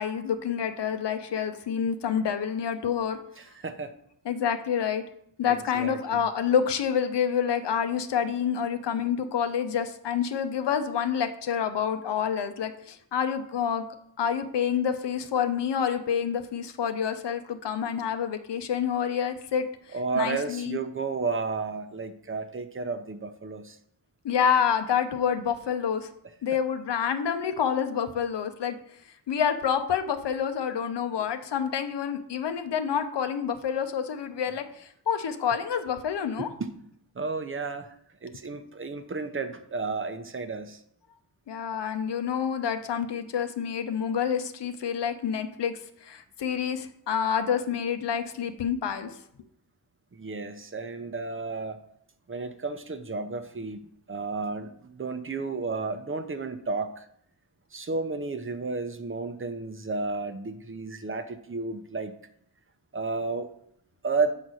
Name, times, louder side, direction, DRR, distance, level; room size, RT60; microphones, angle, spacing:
voice 1, 0.0-3.2 4.3-5.0 5.4-13.9 14.2-19.7 20.1-20.8 24.2-26.1 26.4-28.8 29.3-36.5 41.5-49.1, left 7 dB, 85° left, 8 dB, 0.8 m, -28 dB
voice 2, 3.4-3.9 5.5-6.2 19.9-23.8 36.4-36.7 37.1-37.9 38.2-40.8 50.1-51.8 52.3-53.8 54.1-57.1 57.7-62.1 62.9-63.5 64.0-64.4, right 4 dB, 30° right, 9 dB, 0.7 m, -32 dB
7.5 x 4.0 x 6.3 m, 0.69 s
wide cardioid pair, 115°, 41 cm